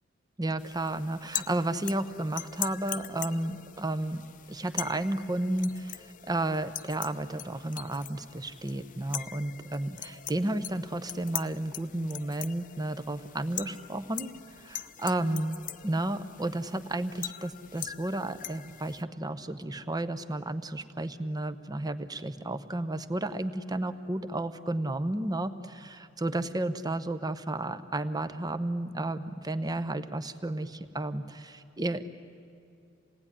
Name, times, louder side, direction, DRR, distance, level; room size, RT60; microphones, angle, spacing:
voice 1, 0.4-4.2 4.5-14.3 14.6-32.0, right 1 dB, 20° right, 11 dB, 0.8 m, -32 dB
sound 1, 0.6-19.0, left 11 dB, 40° left, 0.7 m, -42 dB
27.5 x 18.5 x 9.9 m, 2.4 s
head